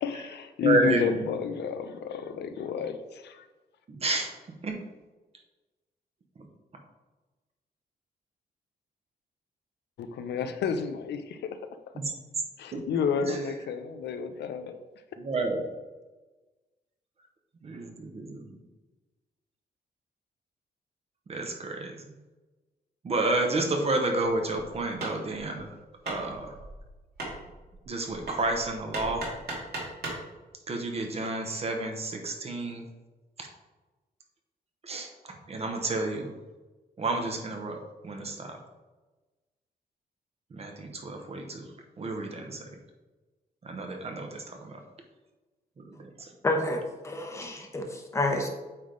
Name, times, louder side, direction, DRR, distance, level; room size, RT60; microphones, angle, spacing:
voice 1, 0.0-3.4 10.0-11.4 12.6-14.8, left 6 dB, 90° left, 9 dB, 0.6 m, -31 dB
voice 2, 0.6-1.1 3.9-4.3 4.6-4.8 11.9-12.1 12.7-12.8 13.2-13.4 15.2-15.6 17.6-18.5 21.3-22.0 23.0-25.7 26.1-26.5 27.9-29.3 30.7-32.9 33.4-33.5 34.9-35.1 35.5-36.3 37.0-38.6 40.5-41.7 42.0-42.6 43.6-44.8 45.8-45.9 46.2-46.3, right 2 dB, 35° right, 3 dB, 0.9 m, -30 dB
Hammer, 24.7-30.3, right 2 dB, 75° right, 2.2 m, -39 dB
voice 3, 46.4-48.5, left 1 dB, 15° left, 2 dB, 0.8 m, -29 dB
8.7 x 3.4 x 3.9 m, 1.2 s
wide cardioid pair, 140°, 17 cm